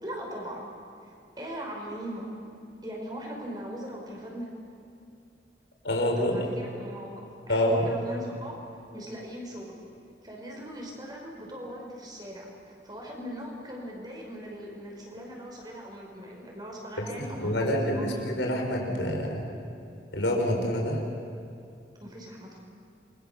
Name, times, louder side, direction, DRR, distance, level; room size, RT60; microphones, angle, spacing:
voice 1, 0.0-0.6 1.0-2.3 2.8-4.5 6.2-8.6 8.9-9.8 10.2-18.3 22.0-22.6, equal, 25° right, -1 dB, 5.5 m, -40 dB
voice 2, 5.8-6.4 7.5-7.9 17.0-19.5 20.1-21.0, left 1 dB, 90° left, 1 dB, 5.3 m, -27 dB
28.5 x 23.5 x 7.1 m, 2.6 s
head